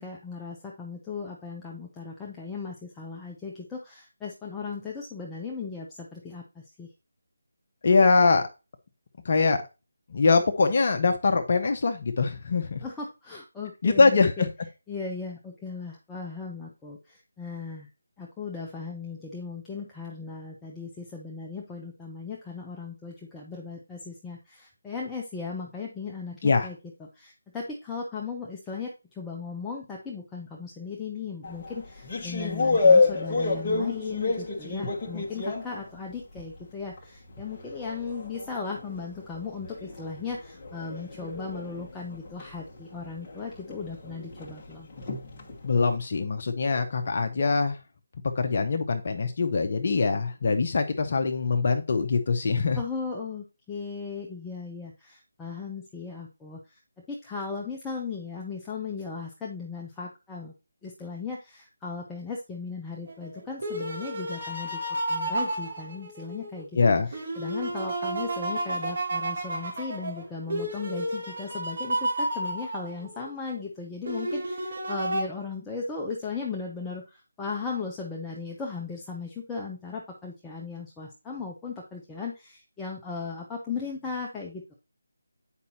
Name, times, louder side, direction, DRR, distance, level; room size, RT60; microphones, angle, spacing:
voice 1, 0.0-6.9 12.8-14.5 14.9-17.9 18.2-44.9 52.7-56.8 57.1-60.5 60.8-64.8 65.1-66.7 67.1-84.7, left 4 dB, 10° left, -3 dB, 0.8 m, -37 dB
voice 2, 7.8-8.4 9.2-9.6 10.1-12.8 13.8-14.5 26.4-26.7 45.6-47.8 48.4-52.8 66.8-67.1, left 4 dB, 45° left, 5 dB, 0.9 m, -23 dB
sound 1, 31.4-36.6 37.0-45.9, left 4 dB, 25° left, 1.4 m, -29 dB
sound 2, 63.1-66.6 67.1-73.3 74.1-75.2, right 1 dB, 50° right, 3.2 m, -31 dB
8.3 x 5.3 x 2.9 m, 0.27 s
figure-of-eight pair, 160°, 0 cm